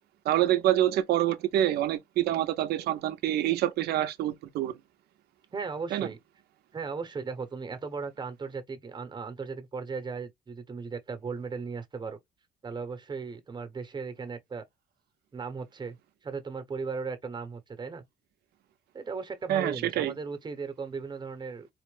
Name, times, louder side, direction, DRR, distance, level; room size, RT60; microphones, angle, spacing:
voice 1, 0.2-4.7 5.9-6.1 19.5-20.1, right 13 dB, 70° right, 0.7 m, -26 dB
voice 2, 5.5-6.2 6.7-12.2 12.6-14.6 15.3-16.0 16.2-18.0 18.9-21.7, right 5 dB, 25° right, 1.0 m, -37 dB
4.3 x 2.1 x 3.2 m
cardioid pair, 110°, 17 cm